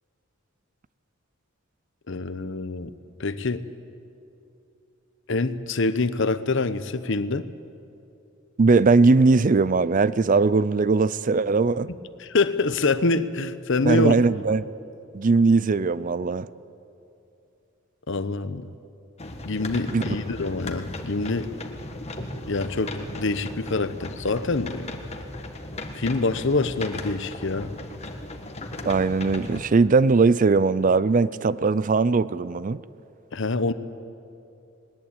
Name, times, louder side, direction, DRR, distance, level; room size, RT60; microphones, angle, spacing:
voice 1, 2.1-2.9 3.2-3.6 5.3-7.5 11.9-14.1 18.1-18.7 19.4-21.5 22.5-24.9 25.9-27.7 33.3-33.7, left 3 dB, 60° left, 0.9 m, -25 dB
voice 2, 8.6-11.9 13.9-14.7 15.1-16.5 19.9-20.0 28.9-32.8, right 4 dB, 40° right, 0.4 m, -20 dB
sound 1, 19.2-29.7, left 1 dB, 30° left, 1.5 m, -36 dB
20.0 x 19.5 x 8.8 m
head